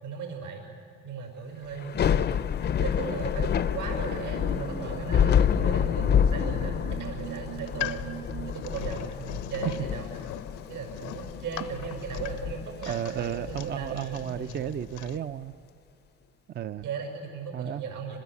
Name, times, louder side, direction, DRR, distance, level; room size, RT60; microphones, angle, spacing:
voice 1, 0.0-0.6 1.0-2.4 2.8-8.1 8.4-10.1 10.7-14.6 16.8-18.2, right 6 dB, 80° right, 2 dB, 6.4 m, -37 dB
Thunder / Rain, 1.8-15.0, left 8 dB, 35° left, 0.6 m, -28 dB
sound 1, 3.8-8.7, right 6 dB, 60° right, 4.0 m, -41 dB
sound 2, 7.5-15.2, left 13 dB, 85° left, 0.9 m, -41 dB
voice 2, 12.9-15.5 16.5-16.9 17.5-17.8, right 9 dB, 35° right, 12 dB, 0.5 m, -33 dB
25.0 x 21.0 x 8.4 m, 2.3 s
cardioid pair, 130°, 30 cm